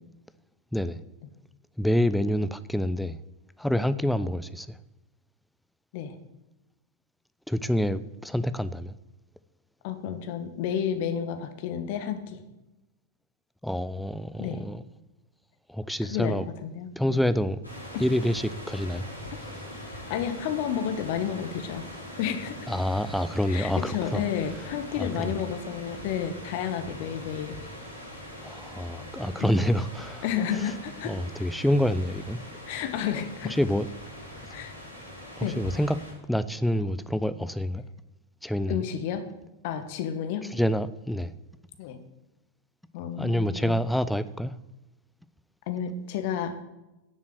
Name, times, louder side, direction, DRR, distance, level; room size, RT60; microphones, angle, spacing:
voice 1, 1.8-3.2 3.6-4.8 7.5-9.0 13.6-14.8 15.7-16.4 17.0-17.6 18.0-19.0 22.7-24.2 25.0-25.4 28.4-30.2 31.0-32.4 33.4-33.9 35.4-36.0 36.3-37.8 38.4-38.8 40.5-41.3 43.2-44.5, equal, ahead, 0.6 m, -27 dB
voice 2, 9.8-12.4 14.4-14.6 16.1-17.2 19.3-19.4 19.9-21.9 22.2-22.6 23.5-27.6 29.4-29.6 30.2-31.1 32.7-33.6 34.5-34.7 35.4-35.6 38.7-39.2 39.6-40.5 41.8-42.0 42.9-43.8 45.7-46.6, left 8 dB, 50° left, 1.5 m, -31 dB
sound 1, 17.6-36.1, left 1 dB, 85° left, 3.8 m, -42 dB
10.5 x 7.4 x 7.8 m
figure-of-eight pair, 90°, 0 cm